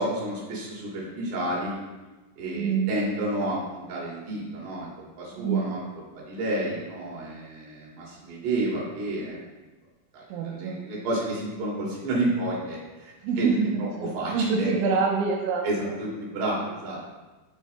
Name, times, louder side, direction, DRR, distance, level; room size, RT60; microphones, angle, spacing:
voice 1, 0.0-1.8 2.4-4.9 5.2-5.8 6.1-9.4 10.1-13.5 14.1-14.8 15.6-17.0, right 1 dB, 65° right, -5 dB, 4.5 m, -30 dB
voice 2, 2.6-2.9 5.3-5.7 10.3-10.8 13.2-15.9, right 5 dB, 90° right, -1 dB, 3.3 m, -26 dB
19.0 x 6.4 x 2.2 m, 1.2 s
omnidirectional pair, 5.3 m